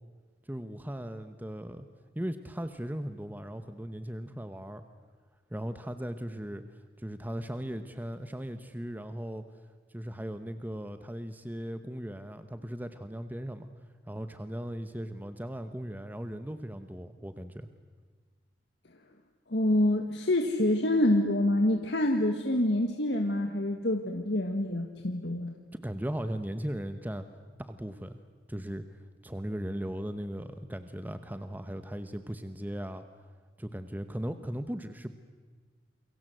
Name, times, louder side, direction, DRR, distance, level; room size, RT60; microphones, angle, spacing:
voice 1, 0.4-1.9 2.1-4.8 5.5-6.6 7.0-9.4 9.9-13.7 14.0-17.7 25.7-27.3 27.6-28.2 28.5-28.8 29.2-33.0 33.6-35.1, equal, 10° right, 9 dB, 0.9 m, -37 dB
voice 2, 19.5-25.5, left 1 dB, 70° left, 4 dB, 1.7 m, -26 dB
29.0 x 23.5 x 7.9 m, 1.4 s
head